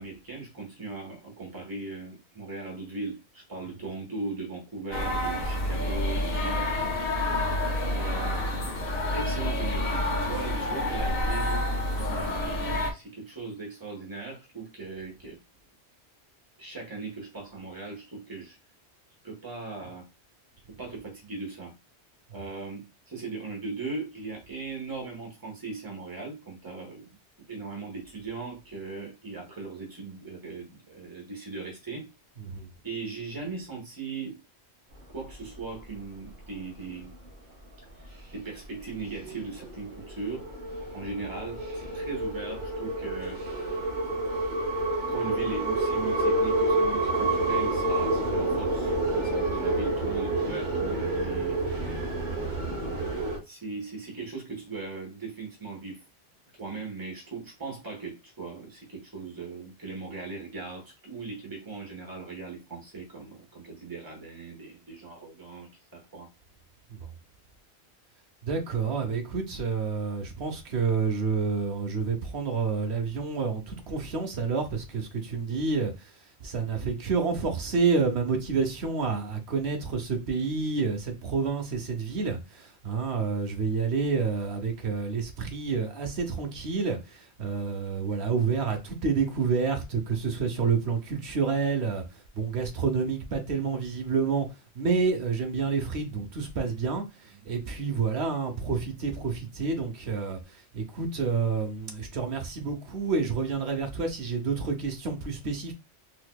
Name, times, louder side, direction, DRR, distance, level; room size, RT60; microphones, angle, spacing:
voice 1, 0.0-6.7 7.9-8.4 9.1-11.7 12.1-12.6 12.9-15.4 16.6-18.6 19.2-20.0 20.7-21.7 22.3-27.0 27.5-32.1 32.8-34.4 35.1-37.1 38.0-40.4 40.9-43.4 45.1-51.6 53.4-56.0 56.6-66.3 97.4-97.5, right 3 dB, 20° right, 1.3 m, -38 dB
sound 1, 4.9-12.9, left 1 dB, 60° left, 1.1 m, -28 dB
voice 2, 32.4-32.7 67.0-67.1 68.4-75.9 76.4-92.0 92.3-94.5 94.7-97.0 97.4-105.7, right 5 dB, 80° right, 1.1 m, -29 dB
sound 2, 35.2-36.0 36.3-36.5 36.9-37.3 37.9-38.2 38.6-53.4, right 2 dB, 45° right, 1.0 m, -29 dB
4.1 x 2.8 x 2.3 m
omnidirectional pair, 1.1 m